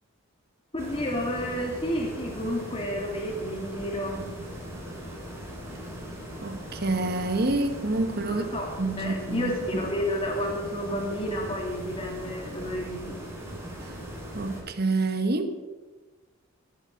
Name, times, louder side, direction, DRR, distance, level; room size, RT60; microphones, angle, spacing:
voice 1, 0.7-4.3 8.2-8.7 9.0-13.1, equal, 25° left, 2.7 m, -31 dB
sound 1, 0.8-14.6, equal, 15° right, 4.1 m, -39 dB
voice 2, 6.4-8.4 8.8-9.5 14.3-15.6, right 2 dB, 45° right, 1.2 m, -27 dB
17.5 x 8.7 x 7.1 m
head